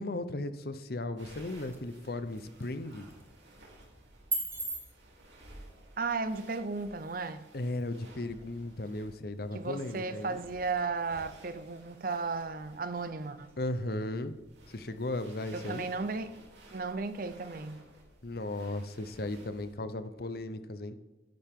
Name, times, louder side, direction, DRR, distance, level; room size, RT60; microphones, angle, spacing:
voice 1, 0.0-3.1 7.5-10.4 13.6-14.4 14.7-15.9 18.2-20.9, left 2 dB, 55° left, 0.8 m, -36 dB
sound 1, 0.8-14.9, right 2 dB, 15° right, 1.5 m, -46 dB
sound 2, 1.2-19.7, right 1 dB, 85° right, 3.1 m, -56 dB
voice 2, 6.0-7.5 9.5-13.5 15.5-16.3 16.7-17.9, right 4 dB, 50° right, 0.7 m, -35 dB
11.5 x 10.5 x 3.7 m
head